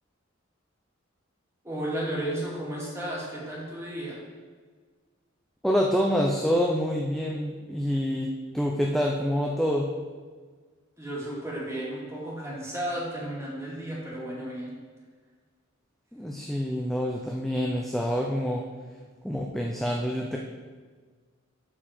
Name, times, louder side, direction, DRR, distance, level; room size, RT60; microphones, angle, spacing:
voice 1, 1.6-4.2 11.0-14.7, right 1 dB, 15° right, -6 dB, 2.5 m, -33 dB
voice 2, 5.6-9.9 16.1-18.7 19.2-20.4, equal, ahead, -1 dB, 0.5 m, -27 dB
12.0 x 4.6 x 4.4 m, 1.5 s
head